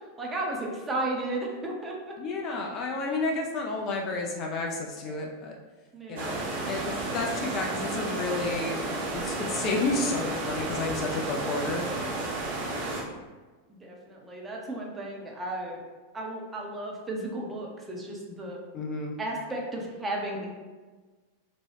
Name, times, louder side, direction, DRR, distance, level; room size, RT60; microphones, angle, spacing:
voice 1, 0.2-2.1 5.9-6.4 13.7-15.8 16.1-18.6 19.2-20.5, right 2 dB, 15° right, -2 dB, 0.6 m, -34 dB
voice 2, 2.2-5.5 6.1-11.9 18.7-19.2, left 3 dB, 35° left, 0 dB, 0.3 m, -31 dB
sound 1, 6.2-13.0, right 2 dB, 60° right, 0.6 m, -32 dB
2.9 x 2.2 x 3.2 m, 1.3 s
figure-of-eight pair, 90°, 0 cm